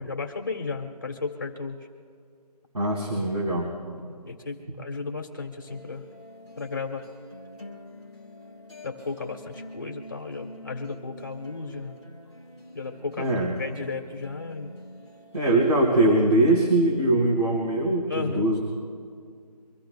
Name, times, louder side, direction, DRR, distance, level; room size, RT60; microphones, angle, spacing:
voice 1, 0.0-1.8 4.3-6.0 6.6-7.0 8.8-12.0 12.7-13.3 13.6-14.7 18.1-18.5, left 4 dB, 30° left, 3 dB, 1.7 m, -34 dB
voice 2, 2.7-3.7 13.2-13.5 15.3-18.6, right 1 dB, 75° right, -4 dB, 4.2 m, -22 dB
sound 1, 5.7-16.6, equal, 10° right, 2.8 m, -46 dB
25.5 x 15.5 x 2.3 m, 2.2 s
figure-of-eight pair, 175°, 21 cm